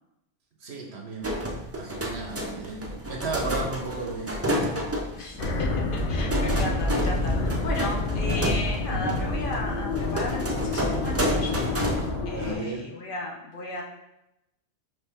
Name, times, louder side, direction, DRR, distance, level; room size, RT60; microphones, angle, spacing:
voice 1, 0.6-1.3 1.8-4.4 12.3-12.9, right 3 dB, 75° right, 0 dB, 1.1 m, -34 dB
sound 1, 1.2-12.1, equal, 25° right, 0.3 m, -30 dB
voice 2, 5.1-5.7 6.1-11.8 12.3-13.8, left 2 dB, 55° left, -1 dB, 0.8 m, -35 dB
sound 2, 5.4-12.6, left 2 dB, 90° left, 1.0 m, -28 dB
5.1 x 2.8 x 3.4 m, 0.90 s
omnidirectional pair, 1.1 m